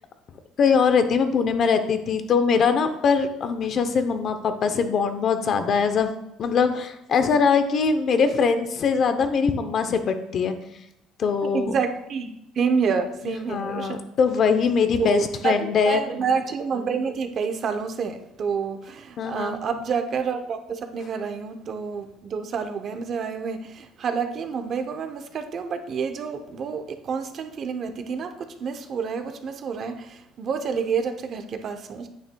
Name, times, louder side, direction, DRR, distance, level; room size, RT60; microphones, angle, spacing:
voice 1, 0.6-6.1 6.4-10.5 11.2-11.8 13.2-16.0 19.2-19.5, left 5 dB, 40° left, 8 dB, 0.7 m, -22 dB
voice 2, 11.4-12.3 12.6-14.0 15.0-32.1, right 6 dB, 35° right, 7 dB, 0.7 m, -28 dB
9.1 x 9.1 x 2.3 m, 0.82 s
cardioid pair, 155°, 0 cm